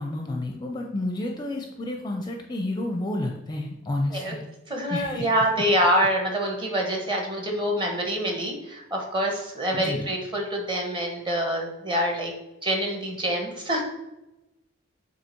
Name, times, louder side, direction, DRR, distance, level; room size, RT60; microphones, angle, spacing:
voice 1, 0.0-4.4 4.9-5.3 9.7-10.1, left 1 dB, 20° left, 2 dB, 0.5 m, -30 dB
voice 2, 4.7-12.3 12.6-13.8, equal, 25° right, 1 dB, 1.1 m, -26 dB
7.4 x 2.9 x 4.5 m, 0.97 s
head